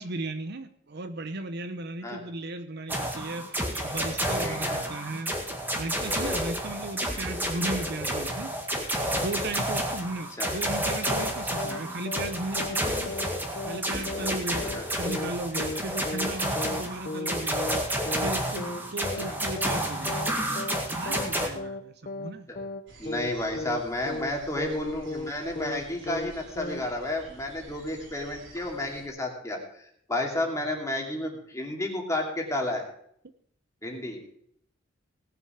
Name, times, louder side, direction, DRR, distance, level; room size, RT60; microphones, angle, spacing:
voice 1, 0.0-5.3 5.7-8.5 9.1-13.2 13.6-17.6 18.2-20.3 20.9-22.5, right 2 dB, 55° right, 10 dB, 0.8 m, -36 dB
sound 1, 2.9-21.5, equal, 10° right, 1.9 m, -30 dB
voice 2, 4.2-4.9 10.4-10.5 14.6-14.8 19.1-19.4 22.5-22.6 23.0-32.8 33.8-34.2, left 1 dB, 15° left, 0 dB, 2.7 m, -32 dB
sound 2, 11.1-11.3 11.6-11.8 12.1-12.3 12.6-12.8 13.1-13.3 13.6-13.8 14.1-14.3 14.6-14.8 15.1-15.3 15.6-15.8 16.1-16.3 16.6-16.8 17.1-17.3 17.6-17.8 18.1-18.3 18.6-18.8 19.1-19.3 19.6-19.8 20.1-20.3 20.6-20.8 21.1-21.3 21.6-21.8 22.1-22.3 22.6-22.8 23.1-23.3 23.6-23.8 24.1-24.3 24.6-24.8 25.1-25.3 25.6-25.8 26.1-26.3 26.6-26.8, left 2 dB, 45° left, 0.8 m, -35 dB
sound 3, 22.9-29.1, right 2 dB, 75° right, 3.2 m, -50 dB
18.0 x 7.0 x 5.8 m, 0.67 s
head